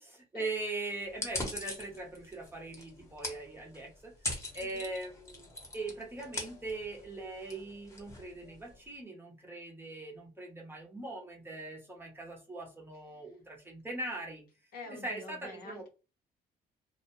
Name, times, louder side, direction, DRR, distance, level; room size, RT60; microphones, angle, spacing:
voice 1, 0.0-4.1 4.5-14.4 14.9-15.8, right 2 dB, 15° right, 0 dB, 0.7 m, -41 dB
sound 1, 1.1-8.8, left 2 dB, 15° left, 0.9 m, -42 dB
voice 2, 4.6-4.9 14.7-15.9, left 3 dB, 65° left, 3 dB, 0.8 m, -47 dB
2.4 x 2.2 x 2.9 m, 0.32 s
cardioid pair, 110°, 17 cm